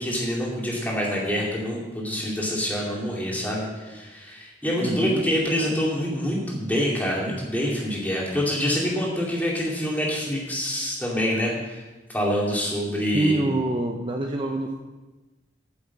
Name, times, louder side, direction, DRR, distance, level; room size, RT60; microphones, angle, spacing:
voice 1, 0.0-11.8 12.1-13.5, equal, 10° left, -4 dB, 2.4 m, -26 dB
voice 2, 4.8-5.2 13.1-14.7, right 2 dB, 25° right, 3 dB, 0.6 m, -26 dB
9.4 x 7.2 x 7.3 m, 1.2 s
head